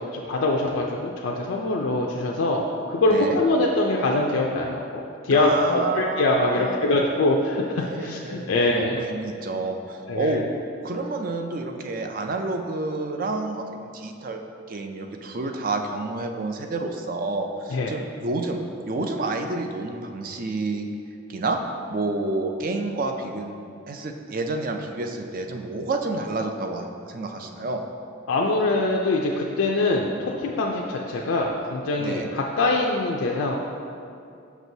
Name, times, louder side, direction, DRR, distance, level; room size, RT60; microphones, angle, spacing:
voice 1, 0.0-2.6 2.9-9.0 10.1-10.4 17.7-17.9 28.3-33.6, left 2 dB, 75° left, -1 dB, 0.4 m, -23 dB
voice 2, 3.1-3.4 5.3-6.8 7.8-10.5 10.8-14.4 14.7-20.9 21.3-21.6 21.9-23.5 23.9-27.8 32.0-32.3, right 3 dB, 45° right, 5 dB, 0.4 m, -29 dB
6.1 x 5.7 x 2.7 m, 2.5 s
head